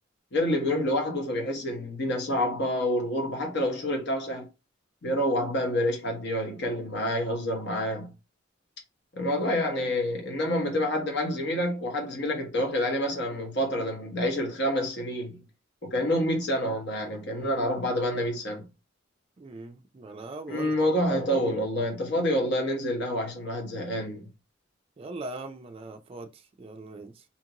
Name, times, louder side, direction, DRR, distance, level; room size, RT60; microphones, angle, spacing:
voice 1, 0.3-4.5 5.0-8.1 9.1-15.4 15.8-18.7 20.5-24.3, left 1 dB, 60° left, 1.0 m, -28 dB
voice 2, 19.4-20.7 21.0-21.4 25.0-27.2, right 2 dB, 30° right, 0.3 m, -41 dB
2.8 x 2.5 x 2.8 m
head